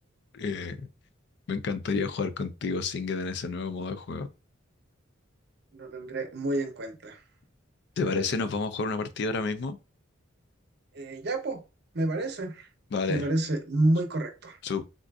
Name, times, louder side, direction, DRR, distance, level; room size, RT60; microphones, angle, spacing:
voice 1, 0.3-0.9 1.5-4.3 8.0-9.8 12.9-13.3 14.6-14.8, left 4 dB, 60° left, 0.4 m, -30 dB
voice 2, 5.7-7.2 8.0-8.3 10.9-11.6 11.9-12.7 13.1-14.6, right 1 dB, 55° right, 0.7 m, -29 dB
3.7 x 2.4 x 2.3 m
head